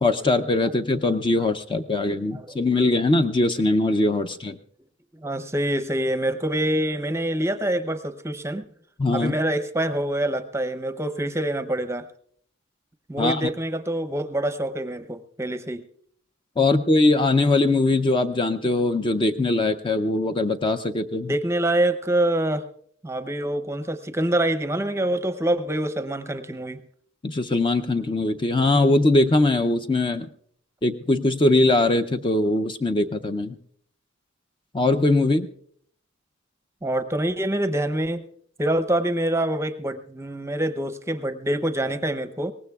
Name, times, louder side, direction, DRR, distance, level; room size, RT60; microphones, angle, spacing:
voice 1, 0.0-4.6 9.0-9.3 13.2-13.4 16.6-21.3 27.2-30.3 30.8-33.6 34.7-35.5, left 2 dB, 25° left, 9 dB, 0.5 m, -21 dB
voice 2, 2.2-3.0 5.2-8.6 9.1-12.1 13.1-15.8 21.3-22.7 23.0-26.8 36.8-38.2 38.6-42.5, right 1 dB, 15° right, 10 dB, 0.7 m, -26 dB
22.5 x 18.5 x 2.3 m, 0.64 s
head